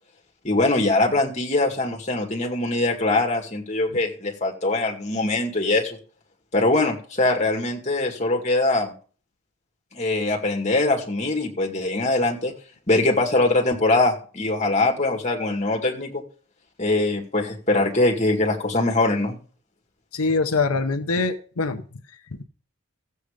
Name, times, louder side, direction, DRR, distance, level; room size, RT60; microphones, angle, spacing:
voice 1, 0.4-6.0 6.5-8.9 9.9-12.5 12.9-16.2 16.8-19.3, left 2 dB, 30° left, 2 dB, 2.2 m, -22 dB
voice 2, 20.1-21.8, left 3 dB, 85° left, 8 dB, 0.9 m, -23 dB
14.0 x 8.0 x 5.1 m, 0.41 s
head